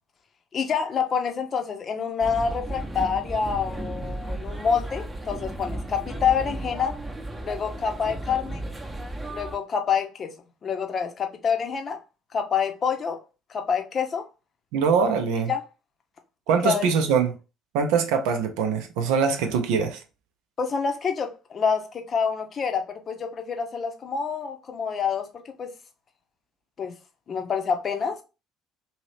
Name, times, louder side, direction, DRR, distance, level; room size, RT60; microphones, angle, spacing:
voice 1, 0.5-6.9 7.4-8.6 9.3-10.3 10.6-12.0 12.3-13.2 13.5-14.2 15.5-15.6 16.6-17.2 20.6-25.3 25.6-25.7 26.8-26.9 27.3-28.2, left 6 dB, 40° left, 0.7 m, -27 dB
sound 1, 2.2-9.6, right 1 dB, 15° right, 0.8 m, -34 dB
voice 2, 14.7-15.5 16.5-17.3 17.7-20.0, right 6 dB, 65° right, 0.6 m, -23 dB
2.8 x 2.7 x 3.2 m
hypercardioid pair, 60°, 0 cm